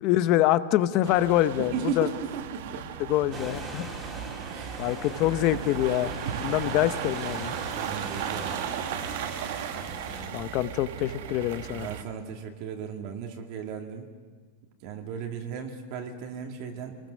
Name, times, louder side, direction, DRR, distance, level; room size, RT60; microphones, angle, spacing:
voice 1, 0.0-2.1 3.1-3.9 4.8-6.1 6.4-7.6 10.3-11.9, left 14 dB, 35° left, 14 dB, 0.8 m, -25 dB
sound 1, 1.0-12.0, right 9 dB, 60° right, 1.4 m, -36 dB
voice 2, 1.6-2.8 4.5-5.0 6.6-6.9 7.8-8.6 11.7-14.1 14.8-17.1, right 6 dB, 40° right, 4 dB, 2.0 m, -36 dB
sound 2, 3.3-10.3, right 2 dB, 10° right, 3.0 m, -39 dB
27.0 x 20.5 x 6.4 m, 1.5 s
supercardioid pair, 170°, 0 cm